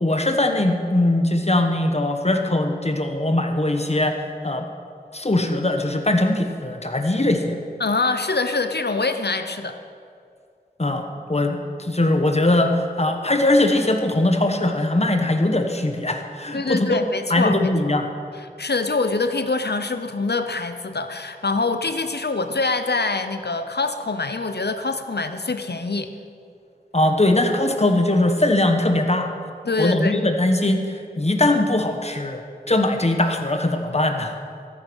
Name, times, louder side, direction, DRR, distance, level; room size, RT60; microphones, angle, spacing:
voice 1, 0.0-4.7 5.1-7.6 10.8-18.1 26.9-29.3 29.8-34.4, left 1 dB, 40° left, 5 dB, 1.2 m, -21 dB
voice 2, 7.8-9.8 16.5-17.7 18.6-26.1 29.6-30.2, left 3 dB, 80° left, 9 dB, 0.8 m, -24 dB
14.0 x 9.5 x 6.3 m, 2.4 s
wide cardioid pair, 45°, 17 cm